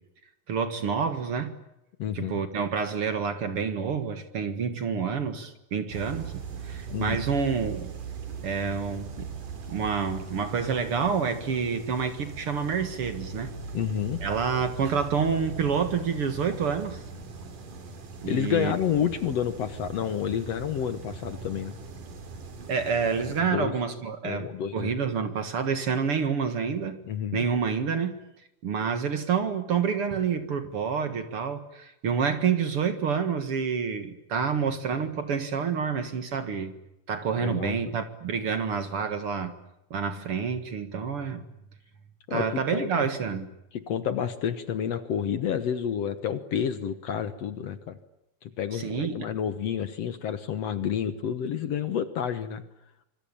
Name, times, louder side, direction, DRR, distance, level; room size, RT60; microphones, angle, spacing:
voice 1, 0.5-1.6 2.1-7.9 8.4-9.3 9.7-13.5 14.2-17.0 18.2-18.7 22.7-27.0 27.3-28.2 28.6-36.7 37.1-39.6 39.9-41.5 42.3-43.5 48.7-49.3, right 6 dB, 50° right, 9 dB, 2.3 m, -28 dB
voice 2, 2.0-2.4 6.9-7.3 13.7-14.2 18.3-21.7 23.4-23.7 24.2-24.9 27.1-27.5 37.4-37.9 42.3-43.1 43.7-48.0 48.4-52.6, left 8 dB, 60° left, 11 dB, 2.0 m, -29 dB
sound 1, 5.9-23.4, right 5 dB, 80° right, 4.7 m, -40 dB
26.0 x 24.5 x 8.8 m, 0.88 s
omnidirectional pair, 3.6 m